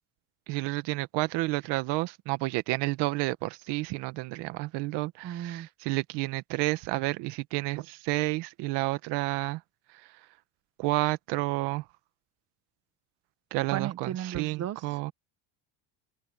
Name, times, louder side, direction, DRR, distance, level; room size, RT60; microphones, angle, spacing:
voice 1, 0.5-9.6 10.8-11.8 13.5-15.1, right 21 dB, 85° right, 1.2 m, -30 dB
voice 2, 5.2-5.7 13.7-14.8, right 11 dB, 40° right, 1.0 m, -34 dB
open air
cardioid pair, 165°, 40 cm